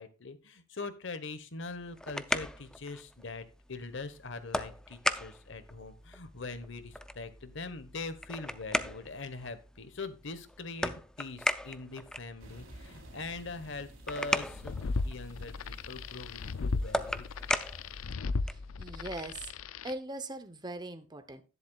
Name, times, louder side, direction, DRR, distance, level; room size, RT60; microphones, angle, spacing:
voice 1, 0.0-17.3, left 3 dB, 60° left, 12 dB, 1.2 m, -42 dB
sound 1, 1.7-18.7, left 1 dB, 5° left, 0.5 m, -38 dB
sound 2, 12.4-18.0, right 1 dB, 75° right, 3.3 m, -55 dB
sound 3, 14.5-19.9, left 4 dB, 90° left, 0.5 m, -36 dB
voice 2, 18.5-19.5 19.8-21.4, right 2 dB, 20° right, 11 dB, 0.8 m, -41 dB
11.0 x 10.5 x 2.3 m, 0.33 s
head